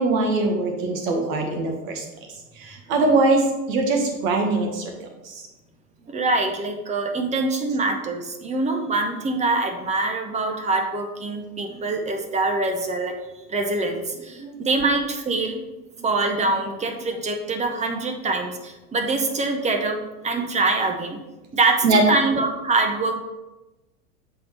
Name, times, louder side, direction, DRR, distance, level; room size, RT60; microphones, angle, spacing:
voice 1, 0.0-2.0 2.5-4.9 5.2-5.4 14.4-14.5 21.8-22.0, right 2 dB, 60° right, 3 dB, 1.6 m, -22 dB
voice 2, 6.1-15.6 16.0-20.0 20.2-21.2 21.5-23.2, right 3 dB, 15° right, 5 dB, 0.6 m, -24 dB
7.4 x 4.4 x 3.3 m, 1.1 s
hypercardioid pair, 105°, 46 cm